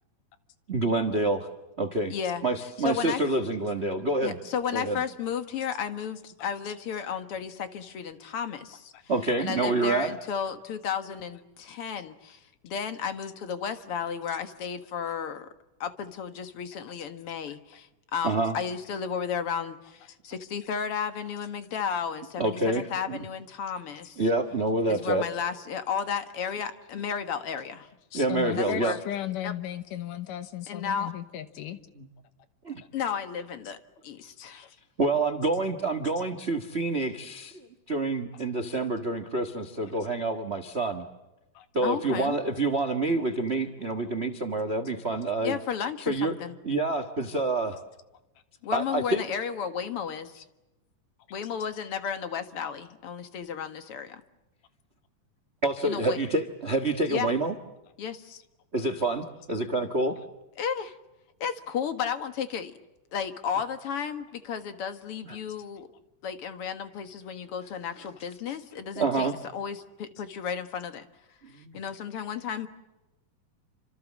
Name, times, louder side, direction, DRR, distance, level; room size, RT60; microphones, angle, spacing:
voice 1, 0.7-1.5 1.8-2.1 2.4-4.4 4.7-5.0 9.1-10.1 18.2-18.6 22.4-23.2 24.2-25.3 28.1-28.9 32.0-32.1 32.6-32.8 35.0-37.6 37.9-41.0 41.7-45.6 46.1-46.3 46.6-47.8 48.7-49.3 55.6-57.5 58.7-60.2 65.2-65.3 69.0-69.3 71.5-71.8, right 2 dB, 50° right, 11 dB, 0.7 m, -27 dB
voice 2, 2.1-2.4 2.8-3.2 4.2-8.9 9.4-15.5 15.8-24.2 24.9-27.9 28.6-29.0 29.4-29.5 30.7-31.1 32.9-33.8 34.0-34.8 41.8-42.4 45.4-46.6 48.6-50.4 51.3-54.2 55.8-56.2 57.1-57.3 58.0-58.4 60.6-61.0 61.4-62.7 63.1-65.9 66.2-69.3 69.5-71.1 71.7-72.7, left 7 dB, 50° left, 9 dB, 2.0 m, -33 dB
voice 3, 28.1-31.8 34.4-34.5 41.6-41.7, left 12 dB, 80° left, 11 dB, 2.8 m, -35 dB
28.5 x 26.0 x 7.4 m, 0.97 s
omnidirectional pair, 3.7 m